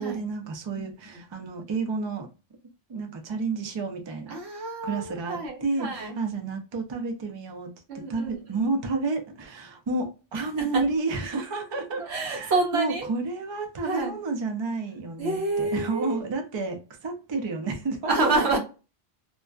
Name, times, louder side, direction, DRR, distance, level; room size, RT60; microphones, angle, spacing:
voice 1, 0.0-2.3 2.9-4.4 4.8-18.3, right 3 dB, 40° right, 0.4 m, -30 dB
voice 2, 4.3-6.1 7.9-8.4 10.7-10.8 12.0-13.1 13.8-14.2 15.2-16.2 18.0-18.6, right 3 dB, 90° right, 1.1 m, -28 dB
2.5 x 2.2 x 2.2 m
omnidirectional pair, 1.1 m